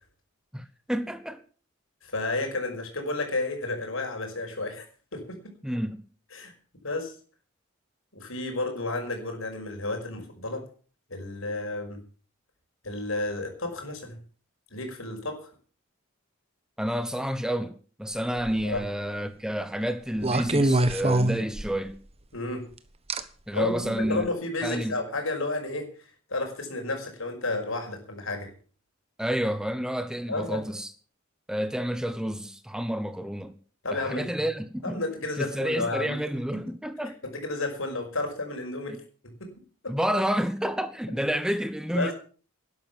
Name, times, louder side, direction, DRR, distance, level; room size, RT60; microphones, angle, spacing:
voice 1, 0.5-1.4 5.6-6.0 16.8-22.0 23.5-24.3 24.6-25.0 29.2-30.9 31.5-33.6 33.9-35.0 35.4-37.2 38.9-39.0 39.9-42.1, equal, 5° right, 0.9 m, -29 dB
voice 2, 2.0-4.8 5.1-5.6 6.3-6.5 6.8-7.1 8.1-10.6 11.1-12.0 12.8-14.2 14.7-15.5 18.6-18.8 22.3-22.7 23.5-28.5 30.3-30.6 33.8-34.4 34.8-36.2 36.5-36.6 37.2-39.0 39.4-39.5 39.8-40.0 41.9-42.1, left 2 dB, 75° left, 5.6 m, -32 dB
sound 1, 18.4-18.8 20.2-22.0 23.1-23.2 24.0-24.2, right 2 dB, 30° right, 1.2 m, -24 dB
12.5 x 11.0 x 7.4 m
head